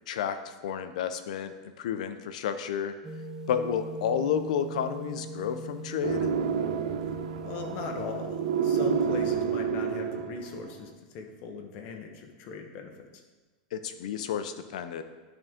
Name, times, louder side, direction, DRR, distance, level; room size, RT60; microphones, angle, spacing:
voice 1, 0.1-2.9 3.5-6.3 13.7-15.0, left 8 dB, 80° left, 10 dB, 0.6 m, -31 dB
sound 1, 3.0-9.4, right 1 dB, 10° right, 0.4 m, -41 dB
sound 2, 6.0-10.6, right 7 dB, 80° right, 0.5 m, -29 dB
voice 2, 7.4-13.1, left 5 dB, 40° left, 3 dB, 0.9 m, -39 dB
11.0 x 3.7 x 3.6 m, 1.3 s
supercardioid pair, 160°, 4 cm